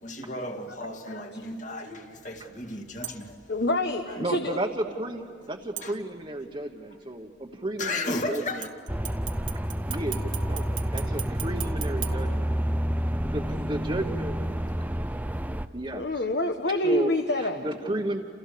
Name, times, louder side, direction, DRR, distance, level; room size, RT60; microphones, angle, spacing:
voice 1, 0.0-3.4 4.1-4.2 5.8-5.9 7.4-7.5 7.8-8.7, left 2 dB, 40° left, 4 dB, 2.1 m, -34 dB
sound 1, 3.0-3.5 5.8-6.5 8.6-13.0 13.4-13.5, right 11 dB, 85° right, 1.8 m, -40 dB
voice 2, 3.5-4.6 15.9-17.7, left 1 dB, 60° left, 6 dB, 1.3 m, -27 dB
voice 3, 4.2-8.7 9.9-12.6 13.2-14.4 15.7-16.3 16.8-17.1 17.4-18.3, right 1 dB, 30° right, 0 dB, 1.2 m, -33 dB
sound 2, 8.9-15.7, equal, 10° right, 0.6 m, -29 dB
29.5 x 29.0 x 6.8 m, 2.4 s
head